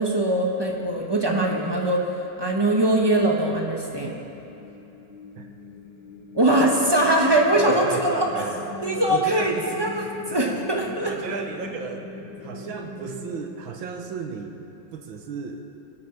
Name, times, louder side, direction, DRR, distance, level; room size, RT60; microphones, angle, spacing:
voice 1, 0.0-2.0 2.4-4.2 6.3-8.4 8.8-9.9 10.3-11.1, right 1 dB, 20° right, 0 dB, 0.8 m, -22 dB
sound 1, 3.9-13.4, left 3 dB, 60° left, 1.6 m, -40 dB
voice 2, 7.6-8.8 9.1-9.9 10.2-10.3 11.1-12.1 12.4-14.6 14.9-15.7, right 6 dB, 65° right, 4 dB, 1.7 m, -33 dB
21.0 x 8.6 x 5.9 m, 2.9 s
omnidirectional pair, 2.4 m